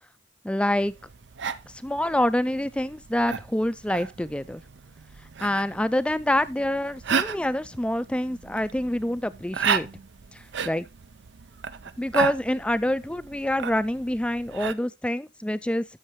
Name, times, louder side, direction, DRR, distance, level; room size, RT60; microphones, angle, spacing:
voice 1, 0.4-0.9 1.7-4.6 5.4-9.9 10.3-10.9 12.0-15.9, left 1 dB, 5° left, 0.4 m, -26 dB
sound 1, 0.8-14.7, right 6 dB, 70° right, 0.5 m, -34 dB
13.0 x 6.4 x 3.1 m
head